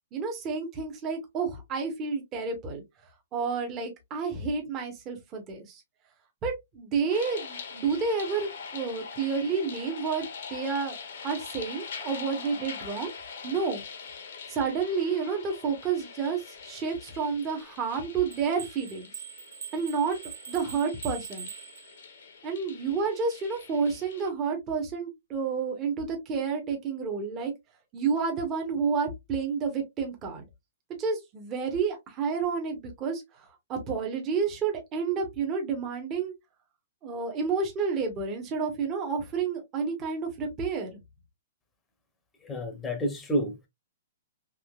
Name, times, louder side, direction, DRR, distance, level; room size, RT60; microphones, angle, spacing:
voice 1, 0.1-2.8 3.3-5.8 6.4-11.0 11.2-13.1 13.4-13.8 14.5-19.1 19.7-20.2 20.5-21.5 22.4-27.5 27.9-30.5 31.0-36.3 37.0-41.0, right 5 dB, 25° right, 1.1 m, -30 dB
sound 1, 7.1-24.3, left 6 dB, 70° left, 0.9 m, -43 dB
sound 2, 18.3-22.3, right 8 dB, 85° right, 0.8 m, -43 dB
voice 2, 42.4-43.7, equal, 10° left, 0.9 m, -29 dB
3.6 x 2.8 x 2.3 m
hypercardioid pair, 150°, 0 cm